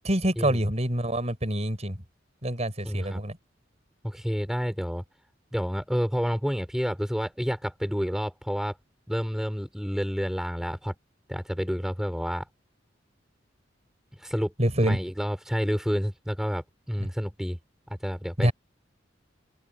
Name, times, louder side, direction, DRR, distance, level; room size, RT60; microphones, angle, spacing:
voice 1, 0.0-2.0 2.4-3.4 14.6-15.0 18.4-18.5, right 1 dB, 35° right, 6.2 m, -26 dB
voice 2, 2.8-3.2 4.0-5.0 5.5-8.8 9.1-10.9 11.3-12.4 14.2-14.5 14.8-17.6 18.0-18.5, equal, 5° right, 4.8 m, -29 dB
head